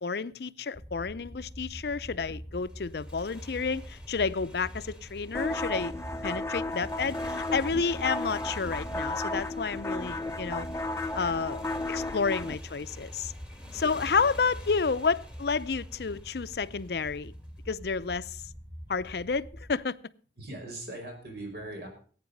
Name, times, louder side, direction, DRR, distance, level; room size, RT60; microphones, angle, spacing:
voice 1, 0.0-5.9 6.2-10.7 11.1-13.3 13.7-17.3 17.7-18.4 18.9-20.0, left 5 dB, 65° left, 0.5 m, -30 dB
sound 1, 0.7-19.7, equal, 25° right, 4.4 m, -45 dB
Motorcycle, 2.6-17.8, equal, 5° right, 1.9 m, -49 dB
sound 2, 5.3-12.6, left 2 dB, 15° left, 0.5 m, -34 dB
voice 2, 20.4-21.9, right 1 dB, 65° right, 5.1 m, -40 dB
17.0 x 8.8 x 5.3 m
head